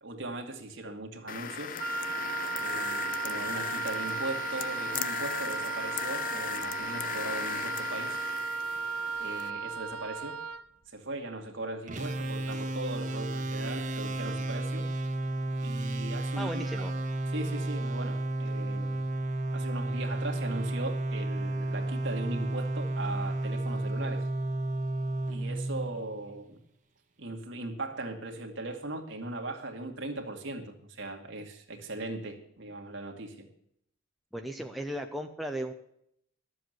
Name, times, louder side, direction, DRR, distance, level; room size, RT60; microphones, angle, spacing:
voice 1, 0.0-1.8 2.6-8.2 9.2-10.4 10.9-14.9 15.6-16.7 17.3-19.0 19.5-24.3 25.3-26.6 27.2-33.5, right 2 dB, 60° right, 3 dB, 2.1 m, -39 dB
sound 1, 1.3-9.5, left 8 dB, 40° left, 0.5 m, -37 dB
Wind instrument woodwind instrument, 1.8-10.7, right 5 dB, 90° right, 0.6 m, -35 dB
sound 2, 11.9-26.4, right 2 dB, 35° right, 1.5 m, -32 dB
voice 2, 16.4-16.9 34.3-35.7, right 1 dB, ahead, 3 dB, 0.7 m, -36 dB
12.0 x 7.7 x 7.8 m, 0.73 s
head